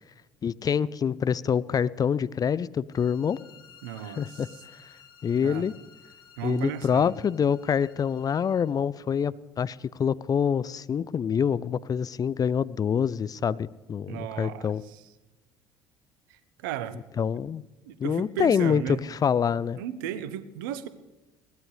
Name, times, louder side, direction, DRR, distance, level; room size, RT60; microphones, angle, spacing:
voice 1, 0.4-3.4 4.0-4.5 5.2-5.7 6.4-14.8 17.2-17.6 18.0-19.8, left 7 dB, 35° left, 19 dB, 0.6 m, -26 dB
sound 1, 2.9-8.8, left 7 dB, 80° left, 2.2 m, -54 dB
voice 2, 3.8-4.5 5.4-5.7 6.4-7.1 14.1-15.0 16.3-17.0 17.9-19.0 19.8-20.9, right 10 dB, 70° right, 15 dB, 1.1 m, -35 dB
22.0 x 18.5 x 3.3 m, 1.1 s
figure-of-eight pair, 55°, 11 cm